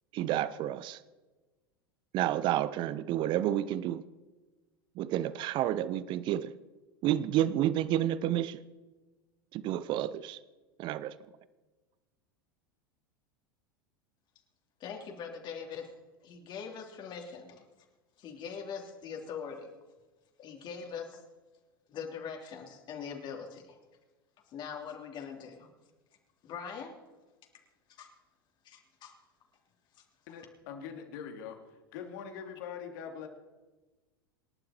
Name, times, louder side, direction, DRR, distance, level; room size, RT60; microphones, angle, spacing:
voice 1, 0.1-1.0 2.1-4.0 5.0-6.5 7.0-8.6 9.5-10.4 10.8-11.1, right 12 dB, 40° right, 0.8 m, -30 dB
voice 2, 14.8-16.0 16.2-17.6 18.2-19.7 20.4-21.2 21.9-23.8 24.5-25.7 26.4-27.0 28.0-28.1 28.6-29.1 29.9-30.3, left 6 dB, 40° left, 3.5 m, -42 dB
voice 3, 30.3-31.6 31.9-33.3, left 7 dB, 55° left, 3.1 m, -42 dB
27.5 x 11.5 x 4.5 m
figure-of-eight pair, 85°, 12 cm